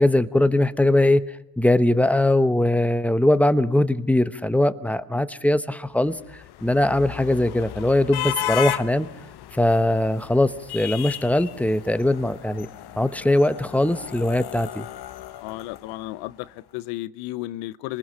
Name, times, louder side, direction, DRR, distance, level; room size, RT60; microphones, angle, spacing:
voice 1, 0.0-6.2 6.6-9.1 9.5-12.7 13.0-14.9, left 1 dB, 5° left, 12 dB, 1.0 m, -21 dB
sound 1, 6.0-16.3, left 13 dB, 55° left, 1.0 m, -35 dB
voice 2, 15.4-18.0, left 17 dB, 85° left, 18 dB, 0.8 m, -33 dB
26.5 x 20.0 x 5.8 m, 0.82 s
supercardioid pair, 75°, 47 cm